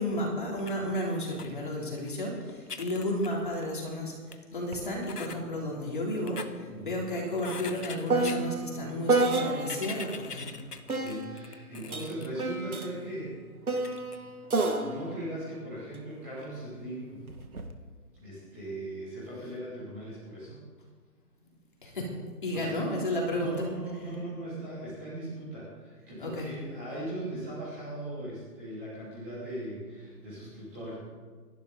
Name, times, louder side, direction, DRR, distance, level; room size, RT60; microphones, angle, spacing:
voice 1, 0.0-10.7 21.8-22.1 22.4-23.5 26.2-26.5, left 1 dB, 30° left, -2 dB, 3.5 m, -32 dB
sound 1, 0.6-0.7 1.3-1.5 2.1-2.2 2.5-3.8 4.3-4.4 5.0-5.4 6.1-6.5 7.4-8.4 9.5-12.3 12.7-12.8 13.8-14.2, left 5 dB, 75° left, 1.5 m, -42 dB
sound 2, 4.7-4.9 5.2-10.0 10.9-16.4 17.3-17.7, right 3 dB, 65° right, 2.1 m, -31 dB
voice 2, 6.6-7.0 10.9-13.4 14.8-17.2 18.1-20.6 22.5-22.8 23.3-30.9, right 1 dB, 10° right, -10 dB, 2.9 m, -39 dB
29.5 x 12.0 x 4.0 m, 1.5 s
hypercardioid pair, 180°, 47 cm